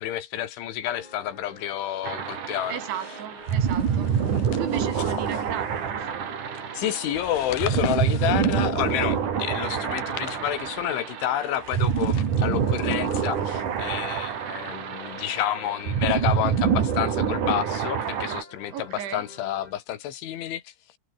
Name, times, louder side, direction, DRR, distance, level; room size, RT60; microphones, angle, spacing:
voice 1, 0.0-2.8 6.7-20.7, left 12 dB, 85° left, 4.4 m, -29 dB
sound 1, 0.8-11.3 12.5-13.5 14.8-19.7, left 1 dB, 10° left, 3.2 m, -47 dB
sound 2, 2.0-18.4, right 7 dB, 50° right, 3.8 m, -27 dB
voice 2, 2.7-4.1 4.6-6.3 18.7-19.3, right 10 dB, 80° right, 4.8 m, -35 dB
sound 3, 3.4-6.2 7.0-9.2 9.8-10.9 11.5-14.4, left 12 dB, 60° left, 2.8 m, -41 dB
omnidirectional pair, 5.3 m